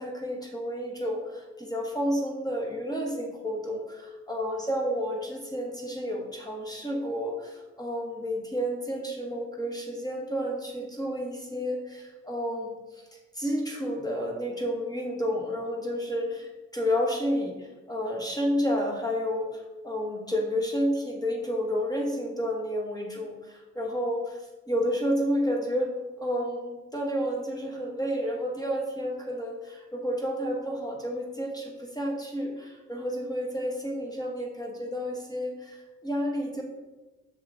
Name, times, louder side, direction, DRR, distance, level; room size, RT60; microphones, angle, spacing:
voice 1, 0.0-24.4 24.7-36.6, equal, 10° left, 0 dB, 1.2 m, -31 dB
6.4 x 5.6 x 3.7 m, 1.2 s
cardioid pair, 90°, 30 cm